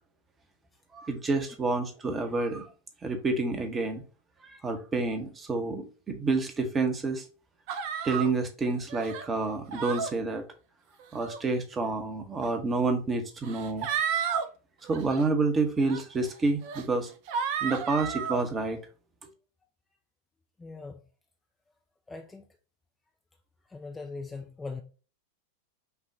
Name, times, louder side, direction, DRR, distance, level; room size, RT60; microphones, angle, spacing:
voice 1, 0.9-2.7 3.0-4.0 4.4-7.2 8.0-10.4 11.1-13.9 14.8-17.1 17.6-18.8, right 3 dB, 20° right, 0.9 m, -29 dB
sound 1, 7.7-8.3 8.9-9.3 9.7-10.1 11.0-11.4 12.4-12.5 13.4-14.5 14.9-15.2 15.9-16.0 16.6-16.8 17.3-18.4, right 7 dB, 45° right, 0.6 m, -32 dB
voice 2, 20.6-21.0 22.1-22.5 23.7-24.8, left 3 dB, 10° left, 0.5 m, -40 dB
5.7 x 2.4 x 3.5 m
figure-of-eight pair, 90°, 0 cm